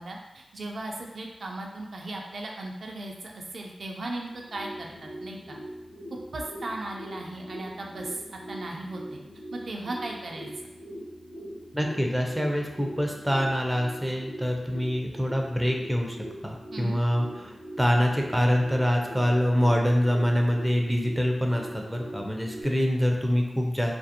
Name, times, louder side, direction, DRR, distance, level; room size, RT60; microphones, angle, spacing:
voice 1, 0.0-5.6 6.3-9.2 9.5-10.7 16.7-17.0, right 2 dB, 65° right, 0 dB, 0.3 m, -37 dB
sound 1, 4.3-22.6, right 1 dB, 85° left, 0.8 m, -41 dB
voice 2, 11.7-16.2 16.4-23.9, equal, 5° right, 1 dB, 0.4 m, -25 dB
2.4 x 2.0 x 2.7 m, 1.0 s
cardioid pair, 55°, 0 cm